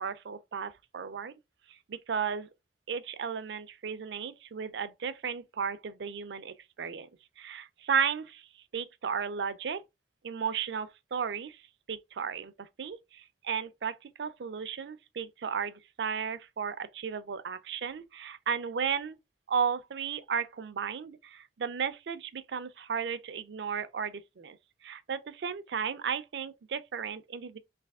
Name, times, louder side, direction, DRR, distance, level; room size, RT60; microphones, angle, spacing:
voice 1, 0.0-1.4 1.7-2.5 2.9-7.1 7.4-8.5 8.7-9.8 10.2-11.6 11.9-19.2 19.5-24.6 24.8-27.6, right 6 dB, 65° right, 0.4 m, -34 dB
3.3 x 2.7 x 3.4 m
head